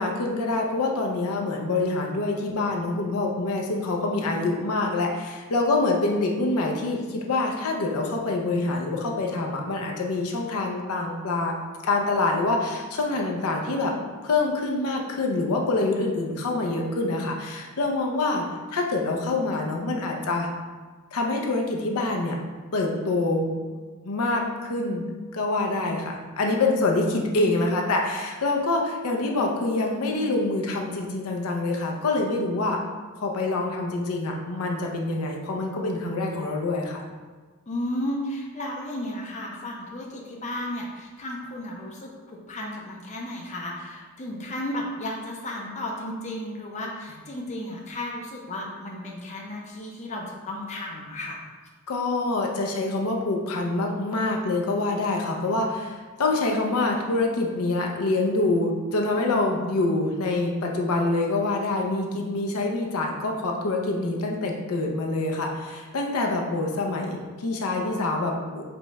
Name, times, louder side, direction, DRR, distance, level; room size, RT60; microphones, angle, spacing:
voice 1, 0.0-11.5 11.8-13.9 14.2-18.5 18.7-20.5 21.1-22.4 22.7-23.5 24.0-25.0 25.3-32.8 33.2-37.0 51.9-68.7, left 2 dB, 80° left, 1 dB, 0.6 m, -26 dB
voice 2, 37.7-51.4, left 1 dB, 30° left, -1 dB, 0.5 m, -34 dB
5.1 x 2.3 x 4.1 m, 1.4 s
head